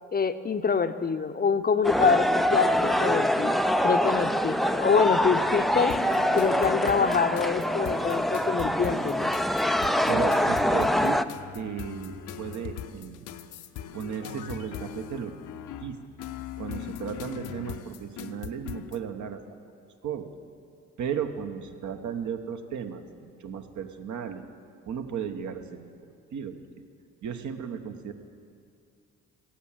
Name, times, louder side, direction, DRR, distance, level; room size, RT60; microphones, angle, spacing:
voice 1, 0.1-6.0 6.3-9.3, left 5 dB, 25° left, 10 dB, 0.7 m, -26 dB
sound 1, 1.8-11.2, equal, ahead, 0.4 m, -25 dB
sound 2, 5.9-19.0, left 10 dB, 60° left, 0.7 m, -40 dB
voice 2, 10.1-11.2 11.5-13.3 13.9-15.3 15.8-16.0 16.6-19.4 20.0-20.3 21.0-24.4 24.9-25.9 26.3-26.6 27.2-28.1, right 7 dB, 55° right, 7 dB, 1.1 m, -35 dB
16.0 x 7.4 x 7.3 m, 2.4 s
hypercardioid pair, 50°, 35 cm